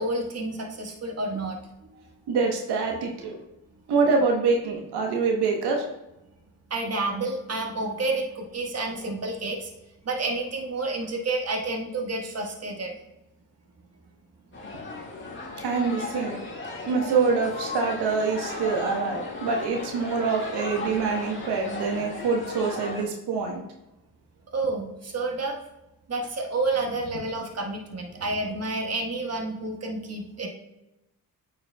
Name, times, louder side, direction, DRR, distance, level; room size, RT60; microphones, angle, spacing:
voice 1, 0.0-1.6 6.7-9.7 10.0-13.0 24.5-25.6 26.1-30.5, right 2 dB, 40° right, 1 dB, 1.5 m, -29 dB
voice 2, 2.3-3.4 3.9-5.9 15.6-16.5 16.9-23.6, right 4 dB, 80° right, 1 dB, 1.1 m, -25 dB
sound 1, 14.5-23.0, left 3 dB, 30° left, 1.8 m, -36 dB
8.9 x 5.4 x 2.3 m, 0.93 s
cardioid pair, 70°, 39 cm